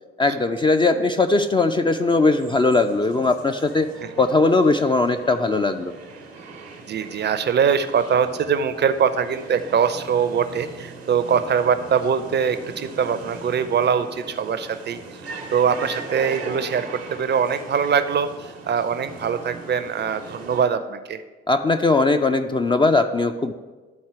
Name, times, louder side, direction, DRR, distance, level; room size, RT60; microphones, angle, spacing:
voice 1, 0.2-3.9 4.2-5.9 21.5-23.5, left 3 dB, 15° left, 6 dB, 0.4 m, -19 dB
sound 1, 2.0-20.6, right 3 dB, 85° right, 1.0 m, -39 dB
voice 2, 6.9-15.0 15.5-21.2, right 7 dB, 35° right, 11 dB, 0.6 m, -22 dB
12.0 x 4.2 x 4.7 m, 1.3 s
figure-of-eight pair, 40°, 31 cm